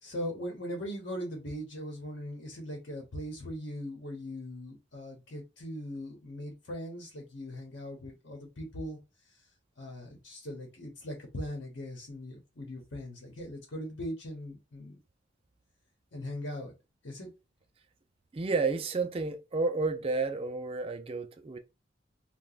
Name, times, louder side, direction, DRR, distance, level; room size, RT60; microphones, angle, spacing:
voice 1, 0.0-9.0 9.8-15.0 16.1-16.7 17.0-17.3, equal, 70° left, 1.0 m, -40 dB
voice 2, 18.3-21.6, right 3 dB, 30° right, 0.4 m, -31 dB
2.9 x 2.2 x 3.9 m
head